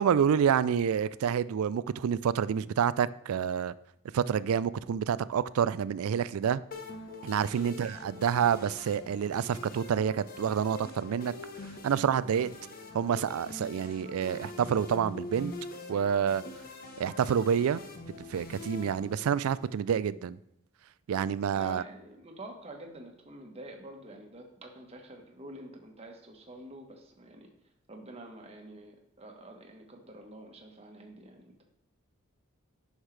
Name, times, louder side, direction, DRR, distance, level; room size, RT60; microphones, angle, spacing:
voice 1, 0.0-3.7 4.1-6.6 7.2-11.3 11.8-12.5 12.9-15.5 15.9-16.4 17.0-17.8 18.3-20.4 21.1-21.8, right 8 dB, 80° right, 18 dB, 0.3 m, -28 dB
sound 1, 6.7-19.7, left 3 dB, 40° left, 1.0 m, -44 dB
voice 2, 21.5-27.5 27.9-31.6, right 1 dB, 30° right, 2 dB, 1.3 m, -47 dB
9.7 x 6.4 x 3.3 m, 0.80 s
head